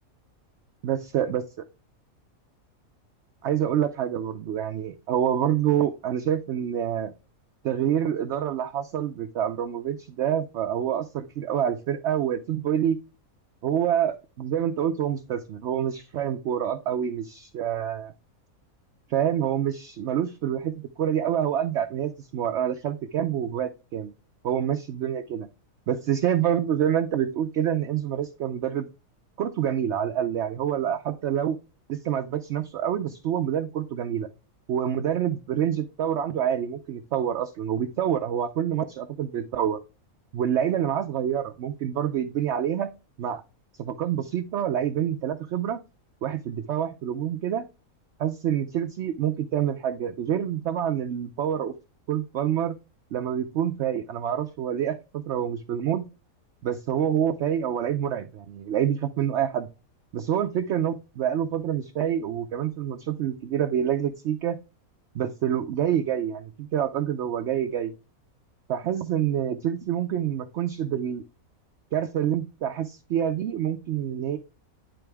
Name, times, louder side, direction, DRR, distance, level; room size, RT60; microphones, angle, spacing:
voice 1, 0.8-1.4 3.4-7.1 7.6-13.0 13.6-18.1 19.1-24.1 24.4-25.5 25.9-28.9 29.4-31.6 31.9-34.3 34.7-39.8 40.3-42.9 43.2-43.4 43.8-45.8 46.2-47.6 48.2-51.7 52.1-52.8 53.1-56.1 56.6-59.7 60.1-64.6 65.1-67.9 68.7-71.2 71.9-74.4, right 9 dB, 65° right, 8 dB, 0.8 m, -27 dB
10.0 x 3.9 x 3.4 m, 0.30 s
omnidirectional pair, 1.5 m